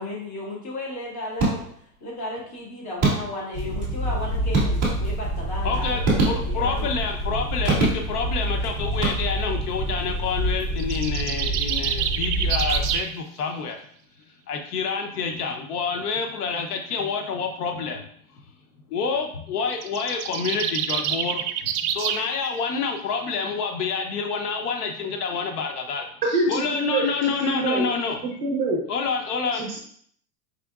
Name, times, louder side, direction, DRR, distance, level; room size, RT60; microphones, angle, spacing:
voice 1, 0.0-1.7 2.0-6.9, left 1 dB, 45° left, -5 dB, 1.8 m, -34 dB
sound 1, 1.4-2.0 3.0-3.6 4.5-5.4 6.0-6.8 7.7-8.4 8.9-9.6, right 3 dB, 5° right, 0.4 m, -25 dB
sound 2, 3.5-12.9, right 1 dB, 30° left, 1.5 m, -27 dB
voice 2, 5.6-13.8 14.5-18.0 18.9-21.4 21.8-26.1 26.5-28.2 28.9-29.6, left 5 dB, 80° left, 4 dB, 0.8 m, -28 dB
sound 3, 10.8-13.1 19.7-22.3, right 9 dB, 80° right, 0.5 m, -27 dB
voice 3, 26.3-27.9 28.2-28.8 29.5-29.8, right 2 dB, 30° right, -1 dB, 0.8 m, -26 dB
5.0 x 3.5 x 2.3 m, 0.62 s
supercardioid pair, 180°, 45 cm